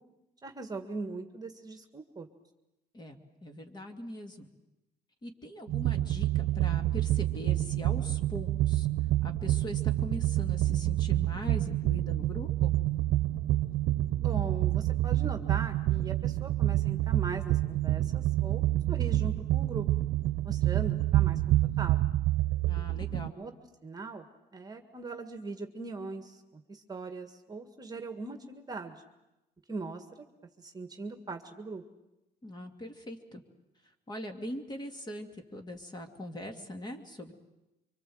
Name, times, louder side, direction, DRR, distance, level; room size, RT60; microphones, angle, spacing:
voice 1, 0.4-2.3 14.2-19.9 20.4-21.4 21.8-22.0 23.2-23.5 23.8-24.3 24.5-29.0 29.7-30.2 30.6-31.8, right 3 dB, 20° right, 6 dB, 1.7 m, -40 dB
voice 2, 2.9-4.5 5.2-8.9 9.2-12.7 22.7-23.3 32.4-33.4 34.1-37.3, equal, 25° left, 5 dB, 2.6 m, -41 dB
sound 1, 5.7-23.3, right 15 dB, 75° right, 0.9 m, -28 dB
25.0 x 24.5 x 7.9 m, 0.95 s
cardioid pair, 110°, 17 cm